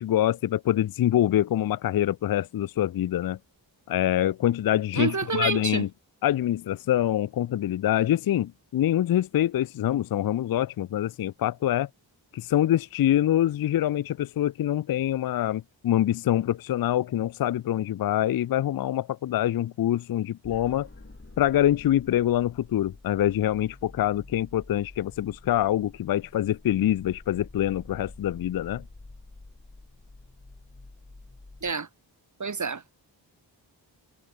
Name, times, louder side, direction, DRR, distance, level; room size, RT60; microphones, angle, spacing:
voice 1, 0.0-3.4 3.9-5.9 6.2-11.9 12.3-20.9 21.4-28.8, left 12 dB, 50° left, 0.5 m, -25 dB
voice 2, 4.9-5.8 31.6-31.9 32.4-32.8, right 5 dB, 40° right, 1.7 m, -28 dB
sound 1, 20.4-31.7, left 2 dB, 30° left, 4.1 m, -48 dB
cardioid pair, 40°, 46 cm